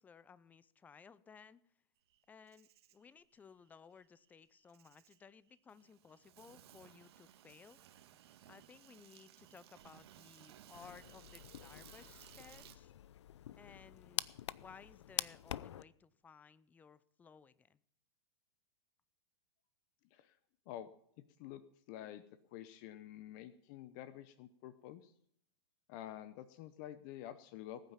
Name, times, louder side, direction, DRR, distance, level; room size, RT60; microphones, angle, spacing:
voice 1, 0.0-1.6 2.3-7.8 8.5-12.9 13.6-14.2 14.5-17.8, left 6 dB, 10° left, 18 dB, 0.5 m, -59 dB
Insect, 2.1-12.8, right 11 dB, 70° right, 1.5 m, -60 dB
sound 1, 10.7-15.8, left 11 dB, 90° left, 0.6 m, -45 dB
voice 2, 21.2-21.6 21.9-22.2 22.5-25.1 25.9-27.9, left 12 dB, 45° left, 14 dB, 0.8 m, -49 dB
19.5 x 9.1 x 5.7 m, 0.69 s
supercardioid pair, 145°, 14 cm